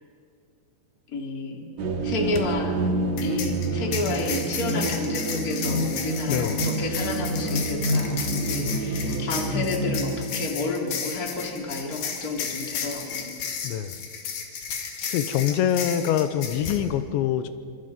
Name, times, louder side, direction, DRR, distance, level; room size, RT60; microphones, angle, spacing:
voice 1, 1.1-1.7 2.0-2.8 3.2-13.3, left 3 dB, 25° left, 1 dB, 2.5 m, -31 dB
sound 1, 1.8-10.2, right 1 dB, 50° right, 2.4 m, -27 dB
sound 2, 2.2-2.4 3.2-16.8, left 6 dB, 60° left, 3.6 m, -33 dB
voice 2, 6.3-6.6 13.6-14.0 15.1-17.5, left 10 dB, 85° left, 11 dB, 3.1 m, -25 dB
27.0 x 25.5 x 5.4 m, 2.3 s
omnidirectional pair, 5.2 m